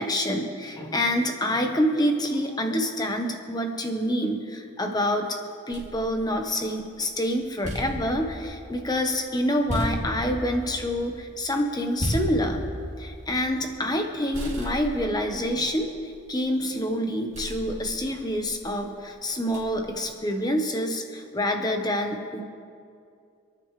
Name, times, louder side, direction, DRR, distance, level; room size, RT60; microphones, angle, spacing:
voice 1, 0.0-5.3 5.7-12.6 13.0-15.9 16.3-22.4, equal, 20° left, 4 dB, 1.1 m, -27 dB
sound 1, 5.7-7.0 7.4-14.1 14.3-16.6 17.3-18.8 19.5-20.0, equal, 35° right, 2.6 m, -35 dB
28.0 x 9.9 x 3.3 m, 2.4 s
head